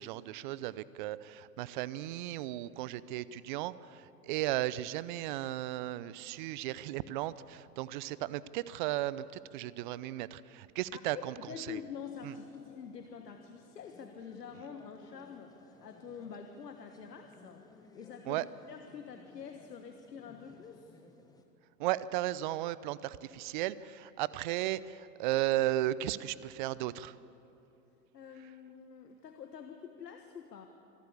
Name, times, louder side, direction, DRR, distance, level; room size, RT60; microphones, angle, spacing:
voice 1, 0.0-9.2 9.5-11.3 11.7-11.8 18.3-18.4 21.8-27.2, right 15 dB, 30° right, 18 dB, 0.5 m, -35 dB
voice 2, 10.9-21.0 28.1-30.7, left 7 dB, 75° left, 5 dB, 1.5 m, -47 dB
sound 1, 11.8-21.4, left 3 dB, 10° left, 1.3 m, -60 dB
26.5 x 12.5 x 8.5 m, 2.9 s
hypercardioid pair, 115°, 48 cm